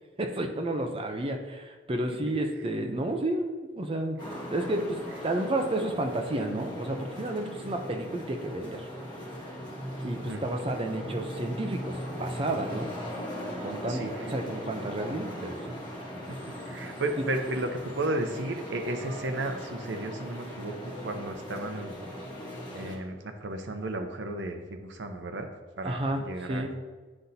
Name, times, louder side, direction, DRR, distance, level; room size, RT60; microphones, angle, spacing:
voice 1, 0.2-4.2 4.5-8.9 10.0-12.9 13.6-15.8 17.2-17.3 25.8-26.7, right 1 dB, 30° right, 4 dB, 0.6 m, -31 dB
sound 1, 4.2-23.0, equal, 25° left, 1.3 m, -39 dB
voice 2, 13.9-14.3 16.3-22.0 22.7-25.5 25.8-26.7, right 2 dB, 70° right, 5 dB, 0.7 m, -34 dB
9.7 x 3.9 x 2.8 m, 1.3 s
head